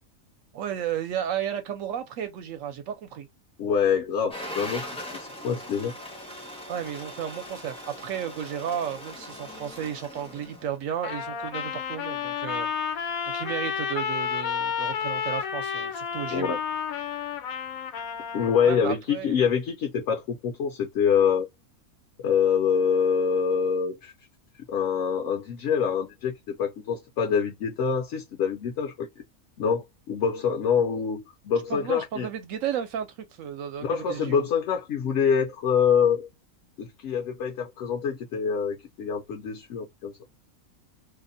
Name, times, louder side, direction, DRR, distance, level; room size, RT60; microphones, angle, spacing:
voice 1, 0.5-3.3 6.7-12.7 13.3-16.5 18.6-19.4 31.7-34.5, right 9 dB, 70° right, 0.9 m, -33 dB
voice 2, 3.6-5.9 16.3-16.6 18.3-21.5 22.2-24.1 24.7-29.1 29.6-32.3 33.8-36.3 36.8-40.1, left 7 dB, 65° left, 0.8 m, -25 dB
sound 1, 4.3-10.8, left 1 dB, 10° left, 0.4 m, -40 dB
Trumpet, 11.0-18.8, left 7 dB, 85° left, 1.1 m, -31 dB
2.7 x 2.1 x 2.5 m
omnidirectional pair, 1.4 m